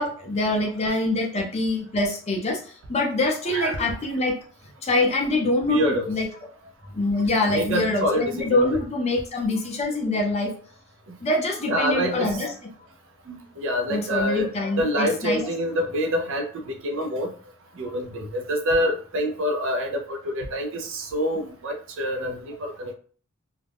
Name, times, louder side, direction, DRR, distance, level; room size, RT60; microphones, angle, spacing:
voice 1, 0.0-4.4 4.8-6.3 6.9-10.5 11.2-12.5 13.9-15.5 18.2-18.3, left 2 dB, 30° left, 1 dB, 0.5 m, -25 dB
voice 2, 3.5-3.9 5.7-6.1 7.5-8.8 11.7-12.4 13.3-14.5 14.8-17.3 17.8-22.9, equal, 60° right, 3 dB, 0.5 m, -26 dB
2.4 x 2.1 x 3.4 m, 0.42 s
head